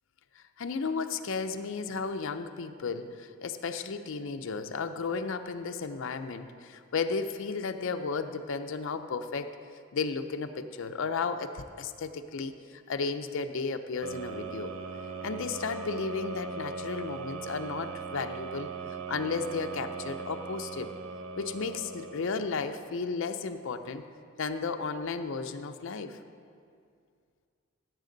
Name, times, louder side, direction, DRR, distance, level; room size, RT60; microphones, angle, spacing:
voice 1, 0.4-9.5 9.9-14.7 15.2-18.7 19.1-20.9 21.4-24.0 24.4-26.2, left 4 dB, 60° left, 8 dB, 0.5 m, -34 dB
sound 1, 14.0-22.9, right 4 dB, 70° right, 0.6 m, -39 dB
15.0 x 7.4 x 3.9 m, 2.3 s
head